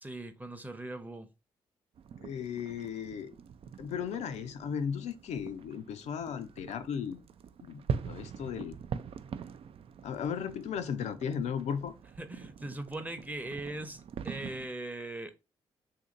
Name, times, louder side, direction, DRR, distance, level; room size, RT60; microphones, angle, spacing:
voice 1, 0.0-1.3 12.2-15.4, right 2 dB, 15° right, 0.7 m, -40 dB
sound 1, 2.0-14.7, right 7 dB, 50° right, 0.4 m, -43 dB
voice 2, 2.2-3.3 3.8-7.2 7.6-7.8 8.1-8.7 10.0-11.9, left 7 dB, 70° left, 0.5 m, -36 dB
2.8 x 2.6 x 3.8 m
hypercardioid pair, 50°, 12 cm